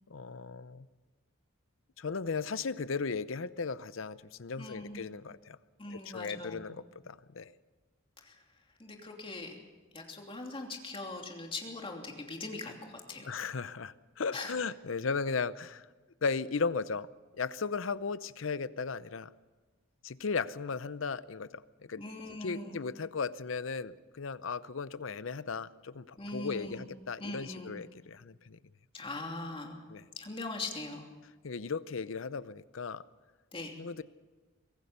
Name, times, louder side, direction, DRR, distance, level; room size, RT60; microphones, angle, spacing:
voice 1, 0.1-0.9 2.0-5.6 5.9-7.5 13.3-15.9 16.2-17.1 17.4-19.3 20.0-22.0 22.4-28.6 29.9-30.0 31.4-33.0 33.8-34.0, left 5 dB, 75° left, 16 dB, 0.7 m, -36 dB
voice 2, 4.6-5.0 5.8-6.7 8.2-8.4 8.8-9.6 9.9-13.3 14.3-14.6 22.0-22.8 26.2-26.8 27.2-27.7 28.9-29.8 30.2-31.1 33.5-33.8, left 2 dB, 25° left, 2 dB, 2.9 m, -41 dB
24.0 x 17.0 x 6.8 m, 1.3 s
head